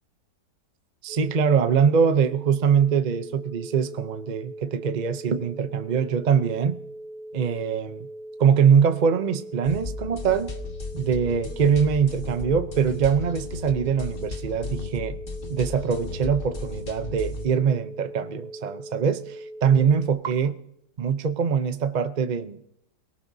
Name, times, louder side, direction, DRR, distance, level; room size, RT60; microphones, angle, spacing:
voice 1, 1.0-6.8 7.3-8.1 8.4-10.5 10.9-15.2 15.5-20.5 21.0-22.6, right 7 dB, 60° right, 0.4 m, -23 dB
sound 1, 1.1-20.1, right 1 dB, 5° right, 2.1 m, -41 dB
sound 2, 9.6-17.5, left 3 dB, 35° left, 1.6 m, -35 dB
29.0 x 18.5 x 2.7 m
omnidirectional pair, 1.8 m